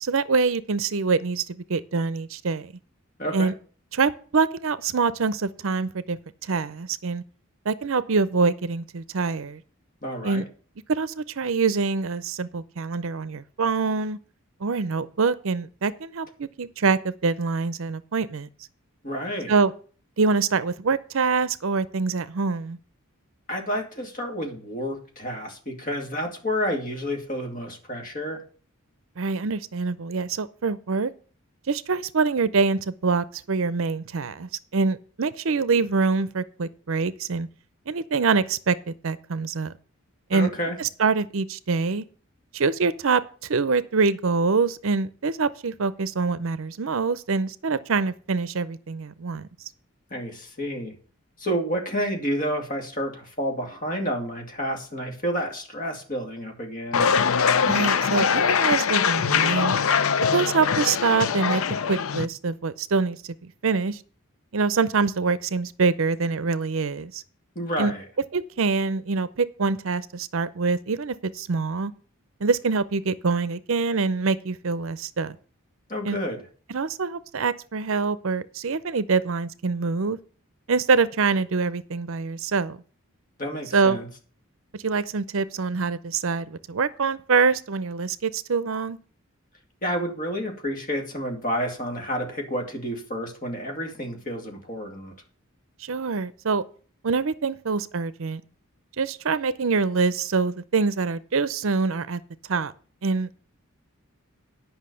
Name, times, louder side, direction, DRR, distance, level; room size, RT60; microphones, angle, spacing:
voice 1, 0.0-2.7 3.3-3.5 3.9-6.2 6.5-7.2 7.7-9.6 10.2-10.4 10.9-14.2 14.6-18.5 19.5-19.7 20.2-22.8 29.2-31.1 31.7-37.5 37.9-39.7 40.3-40.5 40.8-42.0 42.5-43.2 43.5-49.5 57.6-59.7 60.3-61.6 61.9-63.2 63.6-64.0 64.5-67.2 67.8-67.9 68.3-71.9 72.4-75.4 76.0-76.2 76.7-80.2 80.7-82.8 83.7-84.0 84.8-89.0 95.8-96.6 97.0-98.4 99.0-102.2 102.5-102.7 103.0-103.4, right 4 dB, 65° right, 16 dB, 0.6 m, -25 dB
voice 2, 3.2-3.5 10.0-10.5 19.0-19.5 23.5-28.4 40.3-40.8 50.1-50.9 51.4-57.1 67.6-68.0 75.9-76.4 83.4-84.1 89.8-95.1, equal, 40° left, 2 dB, 2.4 m, -30 dB
sound 1, 56.9-62.3, left 6 dB, 70° left, 0.5 m, -22 dB
9.7 x 5.7 x 6.8 m, 0.41 s
head